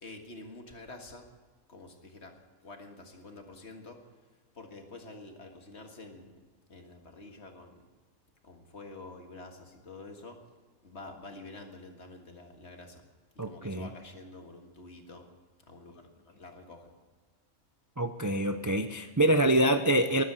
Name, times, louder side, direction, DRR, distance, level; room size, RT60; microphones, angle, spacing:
voice 1, 0.0-1.3 1.7-2.4 2.6-4.0 4.6-6.3 6.7-7.8 8.4-10.4 10.8-13.0 13.4-15.2 15.7-16.9, left 2 dB, 55° left, 4 dB, 2.0 m, -48 dB
voice 2, 13.4-13.9 18.0-20.2, right 1 dB, 25° right, 7 dB, 0.4 m, -26 dB
13.0 x 11.5 x 7.9 m, 1.4 s
omnidirectional pair, 1.4 m